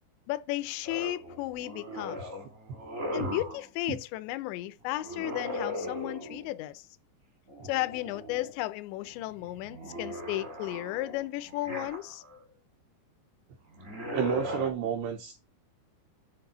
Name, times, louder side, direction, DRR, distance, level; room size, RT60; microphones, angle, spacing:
voice 1, 0.3-2.2 3.1-6.9 7.6-12.2, left 17 dB, 85° left, 2.6 m, -34 dB
sound 1, 0.8-3.6 5.0-6.5 7.5-8.5 8.9-12.4 13.7-14.7, left 1 dB, 45° right, 0.9 m, -38 dB
voice 2, 14.1-15.4, right 9 dB, 80° right, 2.5 m, -31 dB
10.0 x 3.3 x 6.9 m
omnidirectional pair, 5.8 m